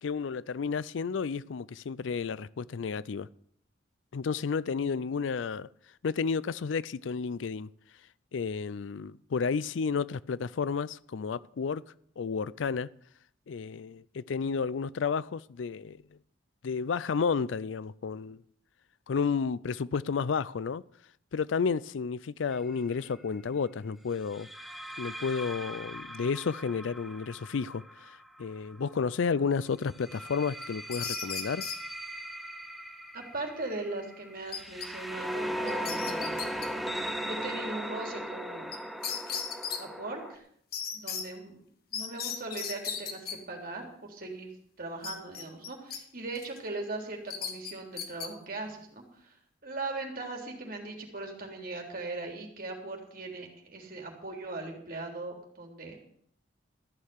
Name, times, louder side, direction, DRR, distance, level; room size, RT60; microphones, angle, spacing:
voice 1, 0.0-3.3 4.1-5.7 6.0-7.7 8.3-11.8 12.2-12.9 13.5-16.0 16.6-18.4 19.1-20.8 21.3-24.5 25.0-31.6, left 5 dB, 80° left, 0.4 m, -31 dB
sound 1, 22.5-22.8 24.3-29.1 29.9-40.3, equal, ahead, 1.0 m, -38 dB
sound 2, 30.6-31.8 34.5-34.9 35.2-35.3 35.7-36.7 38.7-38.8 39.0-39.8 40.7-41.2 41.9-43.4 45.0-46.0 46.4-46.6 47.3-48.3, left 7 dB, 55° left, 1.8 m, -36 dB
voice 2, 33.1-36.5 37.2-38.8 39.8-40.4 40.9-41.6 41.9-44.5 44.8-49.3 49.6-56.0, right 2 dB, 50° right, 3.4 m, -39 dB
14.0 x 6.6 x 9.6 m
head